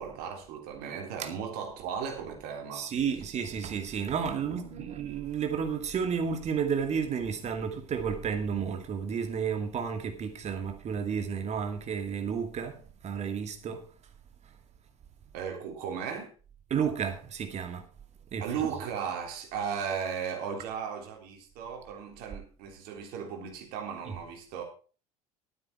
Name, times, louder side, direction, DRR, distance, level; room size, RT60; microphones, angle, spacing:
voice 1, 0.0-2.9 4.4-4.9 15.3-16.3 18.4-24.6, right 7 dB, 55° right, 3.6 m, -36 dB
voice 2, 2.7-13.9 16.7-17.9 18.3-18.5 24.1-24.2, right 7 dB, 35° right, 2.3 m, -32 dB
12.0 x 9.3 x 4.5 m
figure-of-eight pair, 70°, 19 cm